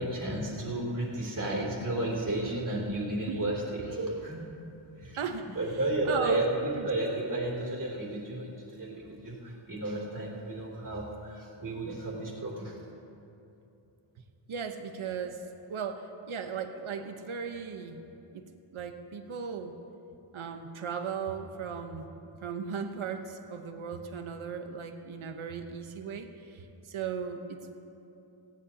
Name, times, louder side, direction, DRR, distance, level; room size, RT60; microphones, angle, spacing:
voice 1, 0.0-4.5 5.0-5.2 5.5-12.8, right 1 dB, 40° right, -3 dB, 2.9 m, -33 dB
voice 2, 5.2-5.6 6.1-6.4 6.7-6.9 14.5-18.0 18.3-19.7 20.3-22.1 22.4-27.7, right 6 dB, 75° right, 7 dB, 1.0 m, -37 dB
18.5 x 16.0 x 2.9 m, 2.9 s
wide cardioid pair, 130°, 50 cm